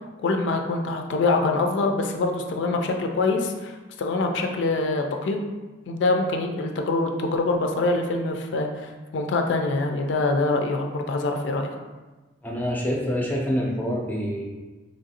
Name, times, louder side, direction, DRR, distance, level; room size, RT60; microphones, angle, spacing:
voice 1, 0.2-5.4 5.9-11.7, left 3 dB, 80° left, 4 dB, 0.3 m, -24 dB
voice 2, 12.4-14.4, equal, 10° left, -2 dB, 0.4 m, -26 dB
3.1 x 2.5 x 2.7 m, 1.2 s
head